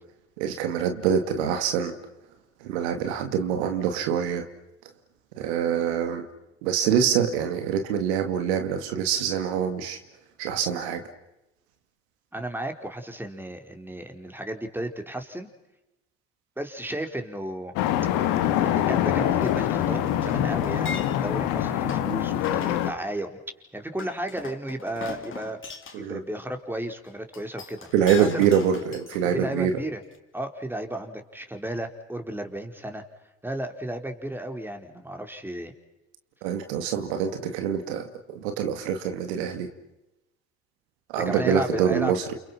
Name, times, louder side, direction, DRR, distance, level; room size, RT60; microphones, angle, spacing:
voice 1, 0.4-2.0 2.6-4.5 5.4-6.3 6.6-10.0 10.4-11.0 25.9-26.2 27.9-29.7 36.4-39.7 41.1-42.3, right 8 dB, 80° right, 7 dB, 2.5 m, -25 dB
voice 2, 12.3-15.5 16.6-17.7 18.6-23.4 23.7-25.6 26.0-27.9 28.2-28.4 29.3-30.0 30.3-33.0 33.4-35.7 41.2-42.1, right 1 dB, 5° right, 5 dB, 4.5 m, -33 dB
sound 1, 17.8-22.9, left 11 dB, 70° left, 2.0 m, -24 dB
Chink clink, 19.4-21.4 21.9-22.1 22.4-22.8 24.0-26.0 27.3-29.7 30.1-30.2, left 5 dB, 40° left, 3.6 m, -39 dB
29.5 x 28.5 x 5.8 m, 0.95 s
hypercardioid pair, 60°, 33 cm